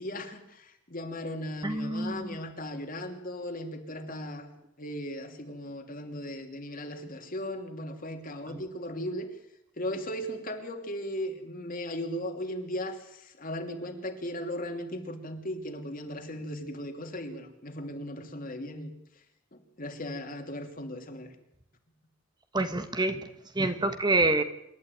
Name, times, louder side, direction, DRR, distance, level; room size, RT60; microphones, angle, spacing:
voice 1, 0.0-4.5 4.8-9.3 9.8-18.9 19.5-21.3, left 1 dB, 45° left, 5 dB, 3.0 m, -37 dB
voice 2, 1.6-2.4 8.5-8.6 22.5-23.2 23.5-24.4, right 2 dB, 20° right, 9 dB, 1.3 m, -27 dB
27.5 x 12.0 x 9.3 m, 0.80 s
head